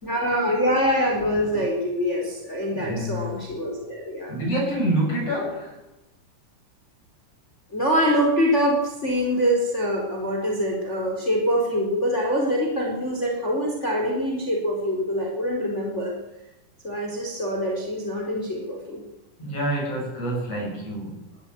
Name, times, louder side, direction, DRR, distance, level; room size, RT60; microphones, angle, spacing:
voice 1, 0.0-4.4 7.7-16.1 16.8-19.0, equal, 20° left, 0 dB, 4.6 m, -24 dB
voice 2, 2.7-3.5 4.3-5.8 19.4-21.3, right 1 dB, 45° left, -2 dB, 9.2 m, -27 dB
21.0 x 15.0 x 9.4 m, 0.98 s
omnidirectional pair, 3.8 m